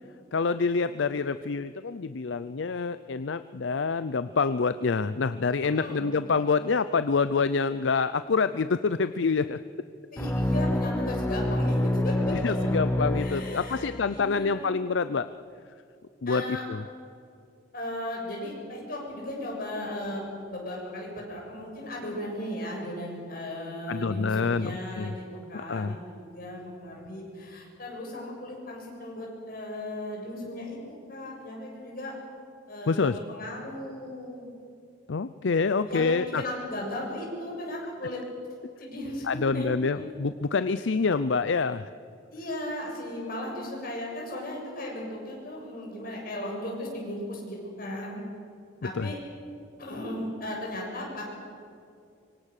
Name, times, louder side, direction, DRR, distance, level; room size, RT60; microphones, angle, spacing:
voice 1, 0.3-9.6 12.3-15.3 16.2-16.8 23.9-25.1 25.5-26.0 32.9-33.2 35.1-36.4 39.2-41.9 48.9-49.1, left 4 dB, 70° left, 13 dB, 0.5 m, -27 dB
voice 2, 5.6-6.1 10.1-12.5 13.1-14.7 16.3-16.6 17.7-30.8 31.1-32.1 32.7-34.5 35.4-38.2 38.8-40.1 42.3-48.2 48.8-49.2 49.8-51.2, left 1 dB, 50° left, -1 dB, 7.5 m, -36 dB
sound 1, 10.2-14.0, left 1 dB, 10° left, 0.6 m, -27 dB
25.0 x 25.0 x 6.7 m, 2.4 s
head